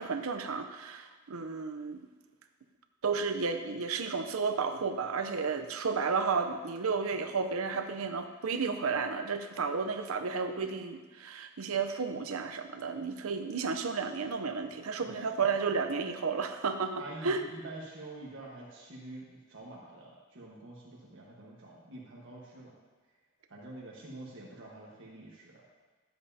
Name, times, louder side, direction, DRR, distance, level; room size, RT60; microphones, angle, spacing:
voice 1, 0.0-2.0 3.0-17.4, right 5 dB, 80° right, 7 dB, 0.7 m, -32 dB
voice 2, 17.0-22.7 23.5-25.7, right 2 dB, 65° right, -5 dB, 1.4 m, -47 dB
12.0 x 7.7 x 2.8 m, 1.3 s
head